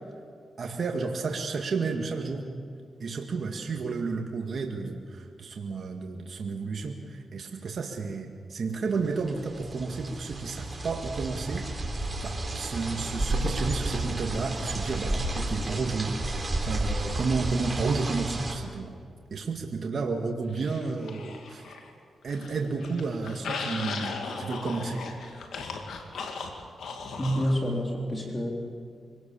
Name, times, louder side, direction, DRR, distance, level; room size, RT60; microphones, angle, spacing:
voice 1, 0.6-2.4 3.0-11.6 12.2-16.4 16.7-18.9 19.3-21.6 22.2-25.0, right 4 dB, 60° right, 2 dB, 2.0 m, -31 dB
sound 1, 9.0-18.5, right 2 dB, 30° right, 3.7 m, -32 dB
sound 2, 20.6-21.9 22.2-27.6, left 4 dB, 80° left, 2.5 m, -37 dB
voice 2, 27.2-28.5, equal, 25° left, -1 dB, 3.7 m, -28 dB
25.0 x 18.5 x 7.1 m, 2.3 s
cardioid pair, 70°, 0 cm